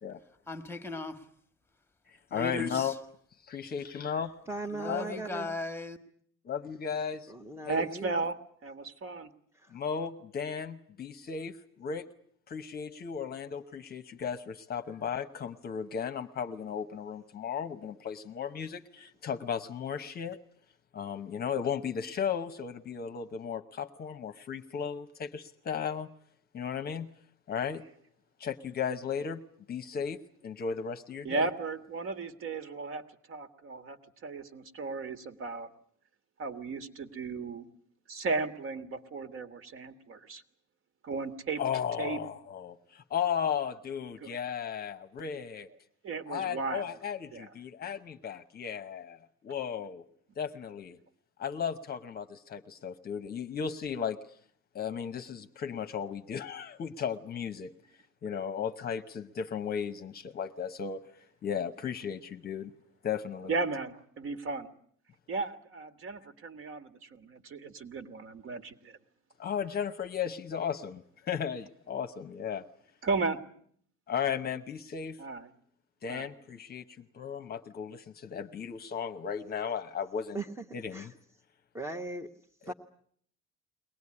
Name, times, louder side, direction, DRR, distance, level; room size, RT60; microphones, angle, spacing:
voice 1, 0.5-1.3 2.3-3.0 4.7-6.0, left 2 dB, 5° left, 1.4 m, -37 dB
voice 2, 2.3-2.9 3.4-4.3 4.9-5.2 6.4-7.3 7.6-7.9 9.7-12.1 12.5-20.4 20.9-26.1 26.5-27.1 27.5-27.8 28.4-29.4 29.7-30.2 30.4-31.5 41.6-45.7 46.3-50.0 50.4-51.0 51.4-54.2 54.7-57.7 58.2-61.1 61.4-62.7 63.0-63.5 69.4-72.6 74.1-75.2 76.0-76.8 77.1-80.4 80.7-81.1 82.7-82.8, left 7 dB, 30° left, 1.0 m, -35 dB
voice 3, 4.5-5.5 7.3-8.2 9.5-9.8 80.3-80.6 80.9-81.1 81.7-82.3 82.6-82.7, right 2 dB, 10° right, 1.0 m, -38 dB
voice 4, 7.7-8.4 8.6-9.3 31.2-34.0 34.2-35.7 36.4-37.6 38.1-40.4 41.0-41.6 42.0-42.2 44.2-44.3 46.0-47.0 47.3-47.5 63.5-64.7 65.3-69.0 73.0-73.4 75.2-75.5 76.1-76.3, right 3 dB, 40° right, 1.8 m, -35 dB
23.0 x 19.0 x 9.8 m
cardioid pair, 165°, 31 cm